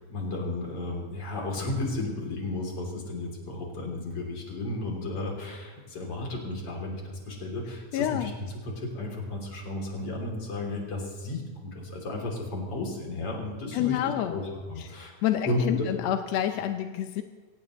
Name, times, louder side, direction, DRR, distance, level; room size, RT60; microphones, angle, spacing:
voice 1, 0.1-8.3 8.6-15.2 15.4-15.9, left 2 dB, 45° left, 0 dB, 3.8 m, -33 dB
voice 2, 7.9-8.3 13.7-14.4 15.2-17.2, left 11 dB, 75° left, 7 dB, 1.6 m, -28 dB
24.0 x 17.5 x 3.1 m, 1.4 s
omnidirectional pair, 3.8 m